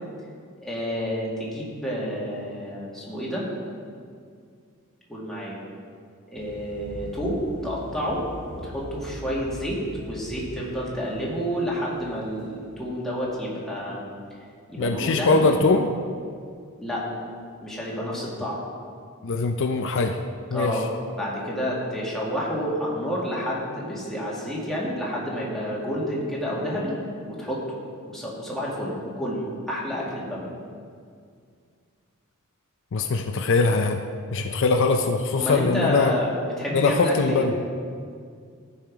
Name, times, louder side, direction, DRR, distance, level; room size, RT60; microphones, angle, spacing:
voice 1, 0.6-3.5 5.1-5.6 6.3-8.2 8.6-9.8 10.1-14.1 14.7-15.5 16.8-17.1 17.6-18.6 20.5-20.8 21.1-27.0 27.3-27.6 28.0-29.4 29.7-30.5 35.3-37.4, equal, ahead, -6 dB, 2.0 m, -29 dB
sound 1, 6.3-15.7 16.0-16.3 16.6-17.0 17.3-17.5, equal, 35° right, 1.9 m, -42 dB
voice 2, 14.8-15.9 19.2-20.2 20.5-20.8 32.9-34.0 34.3-36.1 36.7-37.5, left 3 dB, 60° left, 5 dB, 0.5 m, -22 dB
13.5 x 5.7 x 4.7 m, 2.2 s
head